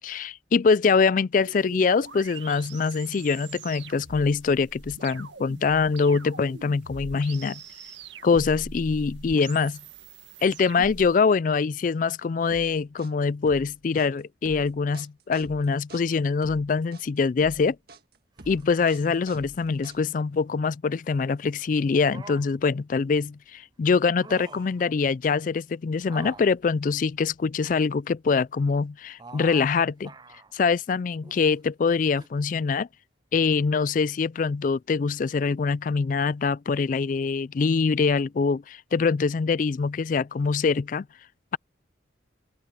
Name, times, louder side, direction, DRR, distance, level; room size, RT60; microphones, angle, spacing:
voice 1, 0.0-7.6 8.2-9.8 10.4-17.8 18.5-30.1 30.5-32.9 33.3-41.0, left 5 dB, 45° left, 0.3 m, -24 dB
sound 1, 1.4-11.1, right 3 dB, 75° right, 2.0 m, -43 dB
sound 2, 12.5-20.3, right 2 dB, 55° right, 1.8 m, -47 dB
sound 3, 18.4-20.0 21.9-22.7 24.0-24.8 26.0-27.8 29.2-29.7 30.0-30.5 31.2-31.6 32.2-32.3, right 3 dB, 20° right, 0.6 m, -47 dB
open air
head